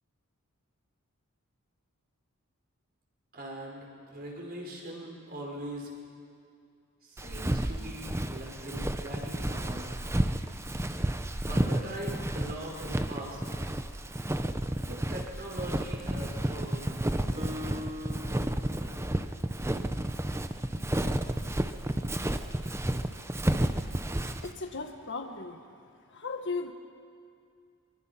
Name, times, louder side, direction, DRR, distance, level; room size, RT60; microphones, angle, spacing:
voice 1, 3.3-5.9 7.0-10.0 11.4-13.4 14.8-17.7, right 1 dB, 45° right, -1 dB, 5.2 m, -41 dB
Walk footsteps, 7.2-24.5, right 1 dB, 10° right, 0.7 m, -31 dB
Acoustic guitar, 17.4-20.1, left 1 dB, 25° right, 2.1 m, -43 dB
voice 2, 24.3-25.6 26.1-26.7, left 4 dB, 55° left, 5 dB, 1.5 m, -37 dB
24.5 x 23.5 x 5.9 m, 2.3 s
head